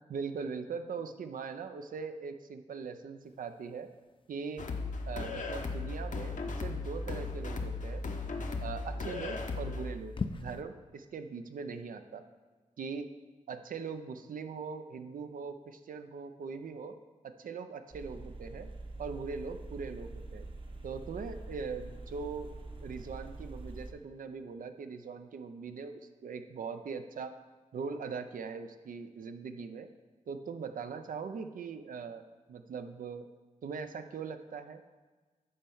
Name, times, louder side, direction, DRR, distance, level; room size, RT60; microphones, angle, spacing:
voice 1, 0.1-3.9 4.3-4.7 5.1-8.0 8.6-12.2 12.8-13.1 13.5-17.0 17.2-18.7 19.0-20.5 20.8-22.5 22.8-27.3 27.7-29.9 30.3-33.3 33.6-34.8, right 5 dB, 80° right, 8 dB, 0.6 m, -41 dB
sound 1, 3.2-10.6, left 4 dB, 40° left, 0.5 m, -46 dB
sound 2, 4.6-9.9, left 3 dB, 65° left, 0.9 m, -36 dB
sound 3, 17.9-23.9, right 2 dB, 40° right, 0.9 m, -45 dB
8.7 x 4.4 x 5.5 m, 1.3 s
cardioid pair, 65°, 14 cm